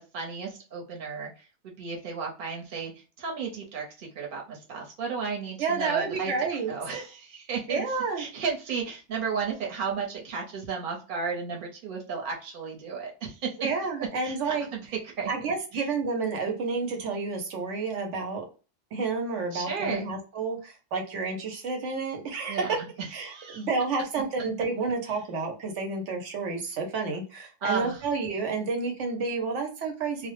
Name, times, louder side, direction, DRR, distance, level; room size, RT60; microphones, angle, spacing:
voice 1, 0.0-13.5 14.2-15.3 15.7-15.8 19.5-20.1 22.5-23.7 27.6-28.0, right 5 dB, 50° right, 0 dB, 0.9 m, -34 dB
voice 2, 5.6-6.7 7.7-8.3 13.6-14.7 15.3-18.4 18.9-22.6 23.1-30.3, right 4 dB, 85° right, 3 dB, 1.0 m, -30 dB
2.2 x 2.0 x 2.9 m, 0.33 s
omnidirectional pair, 1.2 m